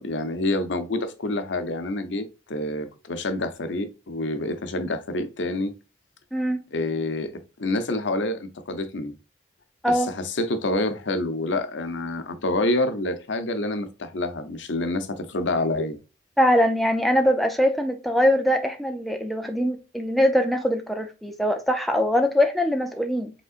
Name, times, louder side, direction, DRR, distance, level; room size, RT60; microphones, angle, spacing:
voice 1, 0.0-5.7 6.7-7.3 7.6-9.1 9.9-16.0, left 2 dB, 85° left, 0.8 m, -27 dB
voice 2, 6.3-6.6 9.8-10.1 16.4-23.3, equal, ahead, 0.5 m, -22 dB
5.3 x 3.7 x 2.5 m
head